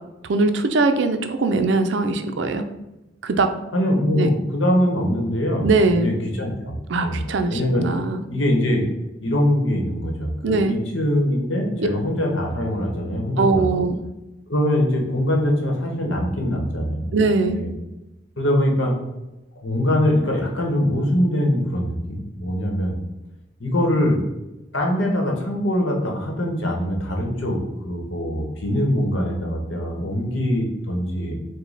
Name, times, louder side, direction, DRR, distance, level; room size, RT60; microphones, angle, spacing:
voice 1, 0.3-2.6 3.2-3.5 4.1-4.3 5.6-6.1 6.9-8.2 10.4-10.8 11.8-11.9 13.4-14.0 17.1-17.6, right 3 dB, 65° right, 7 dB, 0.4 m, -21 dB
voice 2, 3.7-6.7 7.0-7.2 7.5-7.9 8.3-8.8 9.2-13.8 14.5-17.2 17.4-17.7 18.4-18.9 19.6-22.9 23.6-24.2 24.7-27.6 27.8-31.4, left 1 dB, 75° left, 1 dB, 1.0 m, -22 dB
5.0 x 2.2 x 3.9 m, 0.95 s
head